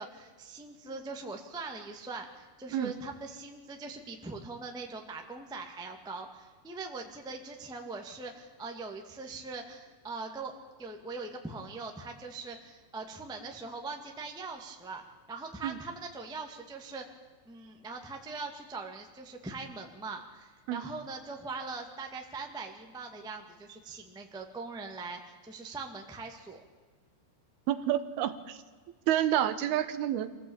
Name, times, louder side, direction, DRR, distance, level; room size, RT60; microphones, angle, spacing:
voice 1, 0.0-10.5 10.8-17.0 17.4-26.6, right 3 dB, 5° right, 2 dB, 0.4 m, -41 dB
voice 2, 27.7-28.6 29.1-30.3, right 11 dB, 75° right, 11 dB, 2.9 m, -29 dB
25.5 x 16.0 x 8.9 m, 1.5 s
omnidirectional pair, 4.7 m